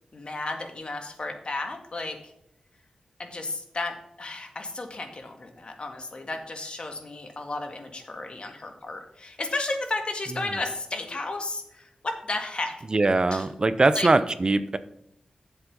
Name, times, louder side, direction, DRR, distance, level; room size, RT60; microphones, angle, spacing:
voice 1, 0.1-2.2 3.2-12.7 13.3-13.4 13.9-14.1, left 2 dB, 50° left, 5 dB, 1.8 m, -33 dB
voice 2, 12.9-14.8, right 3 dB, 40° right, 13 dB, 0.6 m, -21 dB
7.8 x 7.3 x 5.4 m, 0.78 s
cardioid pair, 55°, 2 cm